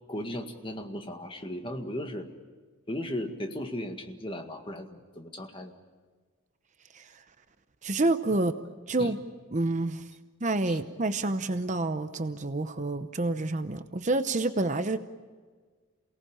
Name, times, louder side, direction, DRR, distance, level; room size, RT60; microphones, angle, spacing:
voice 1, 0.1-2.3 2.9-5.7 8.3-8.4 9.0-9.2 10.7-10.8, left 1 dB, 25° left, 4 dB, 1.9 m, -36 dB
voice 2, 7.8-8.5 8.9-9.2 9.5-10.0 10.4-15.0, right 2 dB, 35° right, 10 dB, 0.8 m, -28 dB
28.5 x 18.5 x 8.9 m, 1.5 s
head